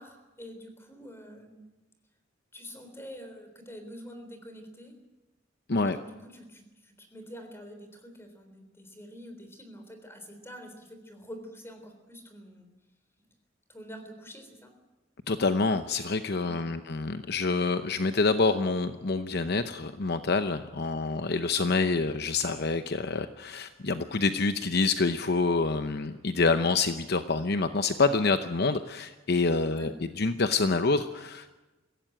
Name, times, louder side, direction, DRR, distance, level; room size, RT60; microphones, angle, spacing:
voice 1, 0.0-1.6 2.5-5.0 5.8-12.7 13.2-13.3 13.7-14.7 29.7-30.0, equal, 15° left, 6 dB, 3.7 m, -46 dB
voice 2, 15.3-31.6, left 3 dB, 55° left, 9 dB, 0.8 m, -27 dB
22.5 x 16.5 x 9.1 m, 1.1 s
head